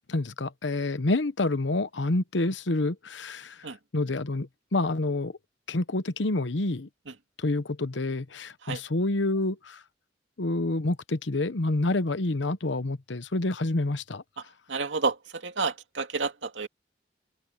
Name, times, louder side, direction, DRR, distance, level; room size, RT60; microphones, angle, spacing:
voice 1, 0.1-3.7 3.9-5.3 5.7-6.9 7.4-9.8 10.4-14.2, left 2 dB, 80° left, 1.0 m, -28 dB
voice 2, 14.7-16.7, right 4 dB, 85° right, 2.4 m, -30 dB
open air
head